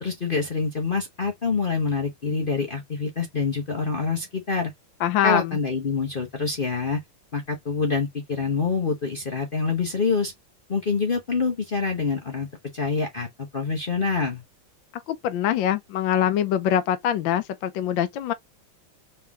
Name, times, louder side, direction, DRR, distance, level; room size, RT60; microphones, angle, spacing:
voice 1, 0.0-4.7 5.2-7.0 7.3-10.3 10.7-12.5 12.7-14.4, left 4 dB, 50° left, 0.6 m, -26 dB
voice 2, 5.0-5.6 15.1-18.3, left 10 dB, 70° left, 1.3 m, -24 dB
4.4 x 3.4 x 3.5 m
omnidirectional pair, 2.3 m